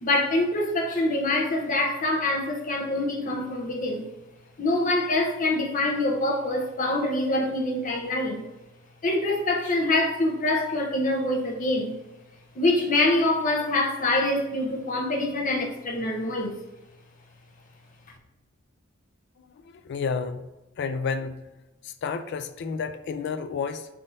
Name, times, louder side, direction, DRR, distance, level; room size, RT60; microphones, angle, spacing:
voice 1, 0.0-4.1 4.6-8.5 9.0-12.0 12.5-16.6, left 2 dB, 40° left, 0 dB, 0.8 m, -25 dB
voice 2, 19.4-20.5 20.8-21.4 21.8-23.9, left 5 dB, 55° left, 9 dB, 0.3 m, -31 dB
5.4 x 3.4 x 2.6 m, 1.1 s
head